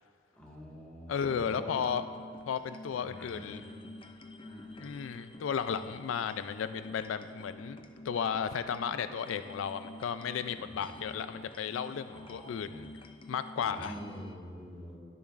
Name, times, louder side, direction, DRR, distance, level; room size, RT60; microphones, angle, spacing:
voice 1, 0.3-1.8 3.0-3.8 4.4-4.8 10.4-11.0 12.1-12.8 13.6-15.0, equal, 5° left, -5 dB, 1.6 m, -46 dB
voice 2, 1.1-2.1 2.5-3.6 4.8-7.8 8.1-12.9 13.3-14.0, left 7 dB, 85° left, 11 dB, 0.3 m, -34 dB
sound 1, 1.1-14.4, left 2 dB, 25° left, 0.4 m, -49 dB
19.5 x 7.0 x 2.5 m, 2.1 s
head